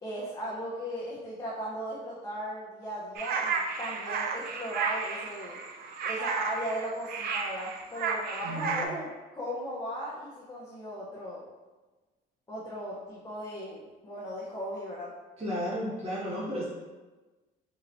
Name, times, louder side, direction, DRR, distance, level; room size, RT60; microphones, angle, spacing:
voice 1, 0.0-5.6 6.0-9.1 9.3-11.4 12.5-15.1, equal, 20° left, -7 dB, 0.7 m, -37 dB
sound 1, 3.2-8.9, right 5 dB, 65° right, 0.4 m, -33 dB
voice 2, 8.4-8.8 15.4-16.7, equal, 35° right, -8 dB, 1.5 m, -33 dB
4.2 x 2.7 x 2.6 m, 1.2 s
cardioid pair, 110°, 17 cm